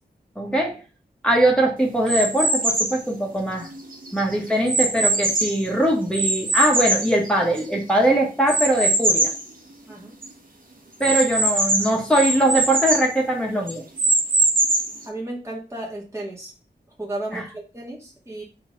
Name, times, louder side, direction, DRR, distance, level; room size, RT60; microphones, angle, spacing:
voice 1, 0.3-0.8 1.2-3.7 4.1-9.3 11.0-13.8 17.3-17.4, right 1 dB, 5° left, -2 dB, 1.8 m, -21 dB
sound 1, 2.1-3.0 3.6-5.7 6.1-7.8 8.5-9.4 9.9-10.0 10.2-10.3 11.0-13.1 13.7-15.0, right 2 dB, 50° right, 1.6 m, -22 dB
voice 2, 15.0-16.5 17.0-18.4, right 1 dB, 15° right, -4 dB, 2.1 m, -34 dB
4.6 x 4.1 x 5.3 m, 0.32 s
wide cardioid pair, 80°, 18 cm